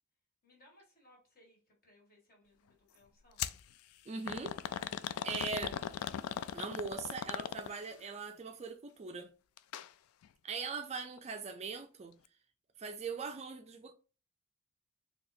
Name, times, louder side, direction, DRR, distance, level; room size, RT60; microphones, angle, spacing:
voice 1, 0.4-3.6, left 1 dB, 45° left, 1.7 m, -65 dB
sound 1, 3.4-3.6 4.3-8.0 9.6-9.9 10.2-10.3 11.2-11.3, left 9 dB, 75° left, 0.3 m, -38 dB
voice 2, 4.1-4.6 5.2-5.8 6.5-9.3 10.4-12.1 12.8-13.9, right 5 dB, 30° right, 0.4 m, -41 dB
4.0 x 2.8 x 2.6 m
head